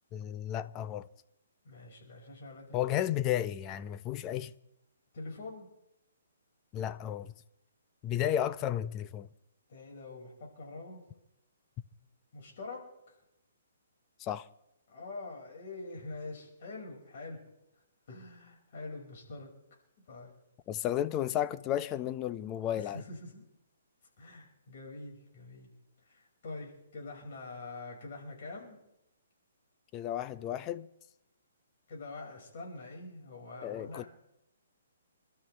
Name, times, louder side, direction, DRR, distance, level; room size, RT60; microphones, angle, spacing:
voice 1, 0.1-1.1 2.7-4.5 6.7-7.3 8.0-9.3 14.2-14.5 20.7-23.0 29.9-30.9 33.6-34.0, left 11 dB, 25° left, 0.6 m, -33 dB
voice 2, 1.6-2.9 5.1-5.7 9.7-11.0 12.3-13.2 14.9-17.4 18.1-19.5 20.1-20.3 22.7-23.4 24.2-25.7 26.0-28.8 30.2-30.3 31.9-34.1, left 3 dB, 55° left, 5.6 m, -45 dB
28.0 x 12.5 x 3.4 m
hypercardioid pair, 155°, 0 cm